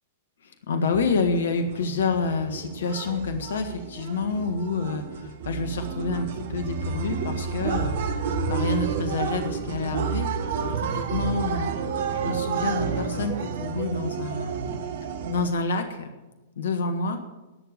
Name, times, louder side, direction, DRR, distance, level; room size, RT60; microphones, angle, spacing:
voice 1, 0.4-11.7 12.2-14.8 15.3-16.1 16.5-17.2, left 4 dB, 70° left, 7 dB, 1.6 m, -28 dB
sound 1, 0.9-15.5, right 6 dB, 60° right, 1.4 m, -30 dB
19.0 x 7.0 x 6.8 m, 1.1 s
hypercardioid pair, 110°, 0 cm